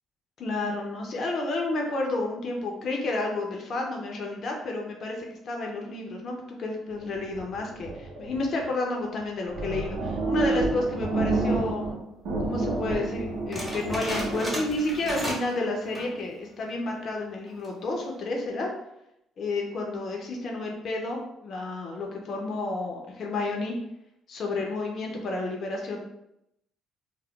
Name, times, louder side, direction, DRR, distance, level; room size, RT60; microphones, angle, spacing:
voice 1, 0.4-12.0 12.4-18.7 19.4-23.7 24.3-26.0, left 2 dB, 50° left, 1 dB, 0.5 m, -31 dB
sound 1, 7.0-8.7 9.2-9.3 9.5-12.0 12.3-15.3, right 2 dB, 70° right, 0.8 m, -30 dB
sound 2, 13.5-15.6 15.8-16.2 16.7-16.8 17.5-17.8, equal, 5° right, 0.9 m, -34 dB
2.3 x 2.1 x 3.5 m, 0.82 s
cardioid pair, 100°, 0 cm